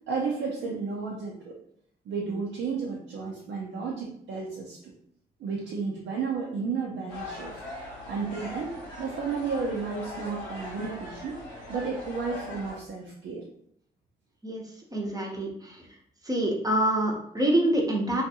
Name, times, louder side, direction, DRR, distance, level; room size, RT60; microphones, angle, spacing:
voice 1, 0.1-1.5 2.1-4.9 5.4-7.6 8.1-11.4 11.7-13.4, right 5 dB, 65° right, -3 dB, 0.5 m, -32 dB
sound 1, 7.1-12.7, left 2 dB, 85° left, 1.0 m, -40 dB
voice 2, 14.9-15.9 16.2-18.2, right 1 dB, 15° right, 0 dB, 0.8 m, -26 dB
2.5 x 2.3 x 2.7 m, 0.69 s
supercardioid pair, 50°, 21 cm